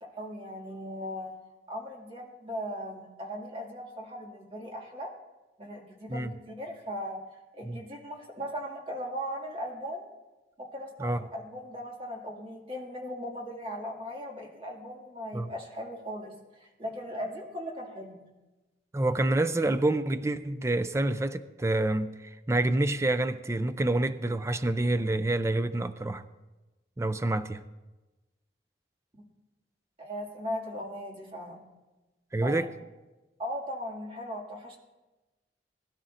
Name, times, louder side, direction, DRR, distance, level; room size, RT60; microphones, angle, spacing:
voice 1, 0.0-1.3 1.7-5.1 5.6-7.2 7.5-10.1 10.6-18.2 30.0-31.6 32.4-32.7 33.4-34.8, equal, 30° right, 2.3 m, -38 dB
voice 2, 18.9-26.2 27.0-27.6 32.3-32.7, right 2 dB, 15° right, 0.4 m, -27 dB
21.0 x 12.0 x 2.6 m
head